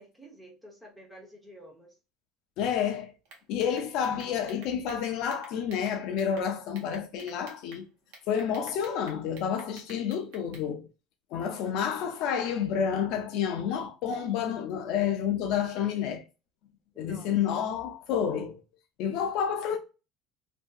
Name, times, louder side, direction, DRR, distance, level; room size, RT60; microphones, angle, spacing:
voice 1, 0.0-2.0 16.9-17.6, equal, 5° right, 0.7 m, -50 dB
voice 2, 2.6-3.1 3.5-7.9 8.3-10.9 11.3-16.2 17.0-18.6 19.0-19.8, left 8 dB, 55° left, 0.4 m, -29 dB
sound 1, 3.2-6.4 6.7-7.8 8.1-10.7, right 3 dB, 70° right, 1.0 m, -50 dB
2.7 x 2.6 x 2.2 m
cardioid pair, 175°, 0 cm